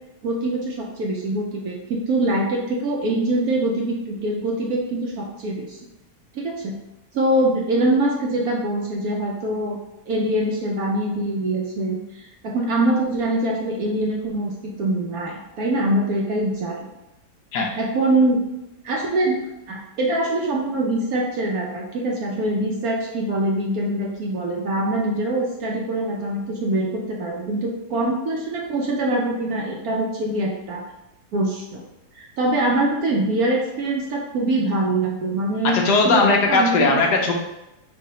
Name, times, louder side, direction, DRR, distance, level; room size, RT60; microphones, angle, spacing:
voice 1, 0.2-5.8 6.3-6.7 7.1-9.8 10.1-14.5 14.8-16.9 17.8-18.4 18.8-30.8 31.3-31.8 32.1-36.9, right 1 dB, 65° right, -1 dB, 1.0 m, -23 dB
voice 2, 35.6-37.3, left 3 dB, 70° left, 2 dB, 1.2 m, -18 dB
4.7 x 2.5 x 4.0 m, 0.92 s
omnidirectional pair, 2.0 m